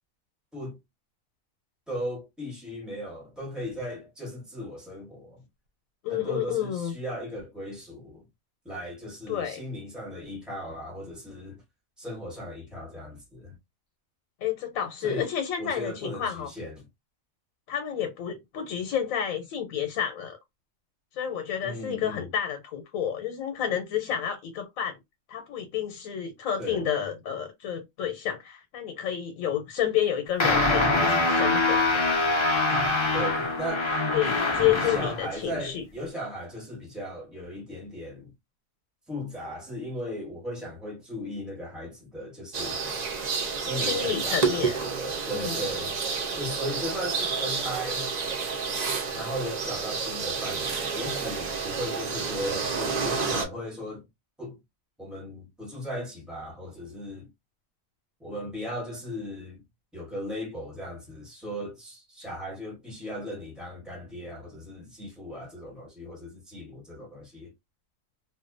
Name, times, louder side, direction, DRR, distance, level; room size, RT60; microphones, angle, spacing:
voice 1, 1.9-5.4 6.1-8.2 8.6-11.6 12.0-13.6 15.0-15.3 15.6-16.9 21.6-22.3 26.6-26.9 33.1-33.9 34.8-38.3 39.1-42.8 43.6-46.0 46.3-48.1 49.1-54.0 54.4-54.6 55.0-57.3 58.2-59.6 59.9-67.5, equal, ahead, 0.7 m, -37 dB
voice 2, 6.0-6.9 9.3-9.6 14.4-16.5 17.7-20.4 21.2-25.0 25.3-32.0 34.1-35.8 43.9-44.8 45.3-45.6, left 9 dB, 90° left, 1.0 m, -30 dB
sound 1, 30.4-35.2, left 2 dB, 45° left, 0.3 m, -24 dB
sound 2, 42.5-53.5, right 5 dB, 60° right, 0.4 m, -30 dB
2.5 x 2.1 x 2.5 m
omnidirectional pair, 1.4 m